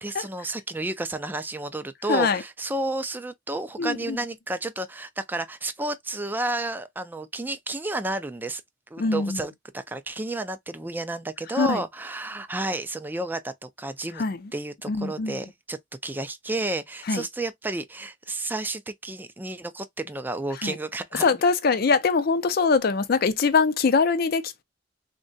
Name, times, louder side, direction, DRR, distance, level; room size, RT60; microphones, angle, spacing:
voice 1, 0.0-8.6 8.9-14.2 14.5-21.4, right 2 dB, 10° right, 0.3 m, -31 dB
voice 2, 2.1-2.4 3.8-4.2 9.0-9.4 11.6-11.8 14.2-14.4 14.9-15.4 17.1-17.2 20.6-20.8 21.2-24.6, left 4 dB, 50° left, 0.5 m, -23 dB
3.6 x 2.2 x 2.5 m
head